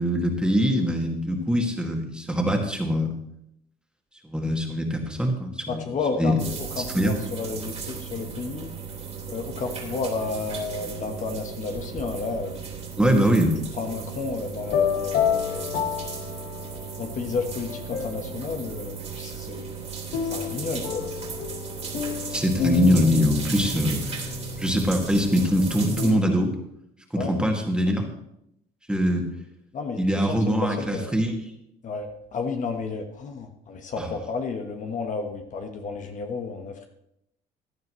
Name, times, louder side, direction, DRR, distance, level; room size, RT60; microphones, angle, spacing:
voice 1, 0.0-3.1 4.2-5.9 6.2-6.4 6.8-7.1 13.0-13.6 22.1-24.3 24.6-26.5 27.1-28.1 28.9-29.3 30.0-31.3 34.0-34.1, equal, 5° right, 2 dB, 2.1 m, -23 dB
voice 2, 5.7-8.8 9.3-12.7 13.8-15.8 17.0-19.7 20.3-21.1 27.2-27.6 29.7-30.0 30.3-31.1 31.8-36.8, left 4 dB, 50° left, 4 dB, 1.3 m, -32 dB
sound 1, 6.4-26.1, right 6 dB, 40° right, 3.0 m, -36 dB
sound 2, 14.6-17.1 17.6-18.5 20.1-26.2, left 7 dB, 70° left, 1.5 m, -30 dB
16.0 x 10.5 x 3.2 m, 0.77 s
cardioid pair, 110°, 17 cm